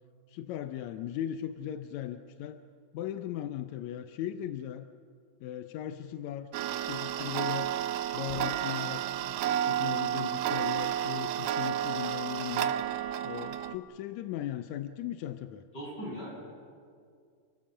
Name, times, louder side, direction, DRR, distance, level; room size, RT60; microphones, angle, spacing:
voice 1, 0.3-2.6 2.9-4.9 5.4-7.7 8.1-12.7 13.2-15.6, left 11 dB, 75° left, 9 dB, 1.7 m, -38 dB
Tick-tock, 6.5-13.8, right 10 dB, 90° right, 2.6 m, -31 dB
voice 2, 15.7-16.5, equal, 25° left, -4 dB, 8.7 m, -39 dB
28.0 x 18.0 x 7.6 m, 2.1 s
omnidirectional pair, 4.0 m